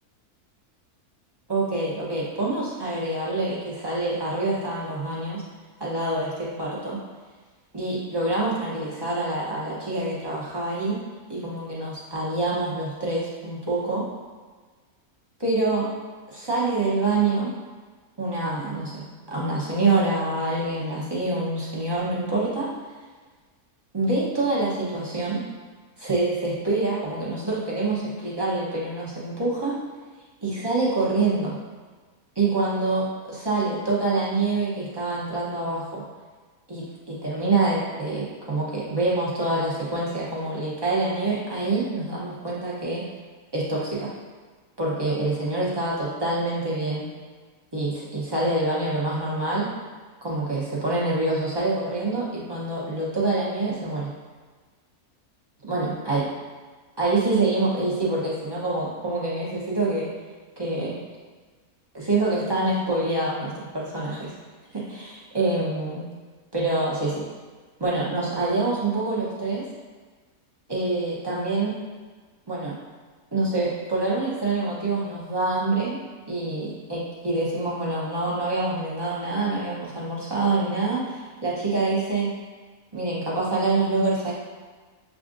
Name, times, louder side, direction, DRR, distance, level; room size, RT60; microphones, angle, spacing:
voice 1, 1.5-5.4 5.8-7.0 7.7-11.0 11.3-14.1 15.4-15.9 16.3-17.5 18.2-22.7 23.9-25.4 26.0-29.8 30.4-31.6 32.4-36.0 36.7-43.0 43.5-44.1 44.8-47.1 47.7-49.7 50.2-54.1 55.6-56.2 57.0-60.1 60.6-61.0 61.9-64.3 64.7-66.0 66.5-67.2 67.8-69.6 70.7-71.8 72.5-72.7 73.3-76.0 76.3-82.3 82.9-84.3, right 2 dB, 35° right, -7 dB, 0.4 m, -26 dB
6.9 x 2.4 x 2.5 m, 1.4 s
omnidirectional pair, 1.6 m